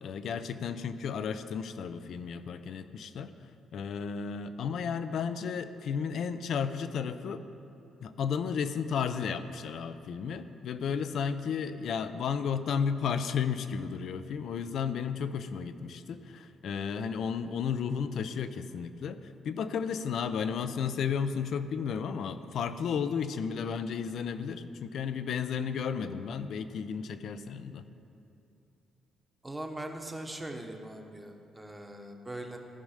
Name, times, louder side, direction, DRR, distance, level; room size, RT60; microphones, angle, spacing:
voice 1, 0.0-3.3 3.7-7.4 8.0-27.8, left 6 dB, 70° left, 11 dB, 0.5 m, -33 dB
voice 2, 29.4-32.6, right 1 dB, 15° right, 4 dB, 1.0 m, -41 dB
15.0 x 5.4 x 4.9 m, 2.8 s
cardioid pair, 90°, 0 cm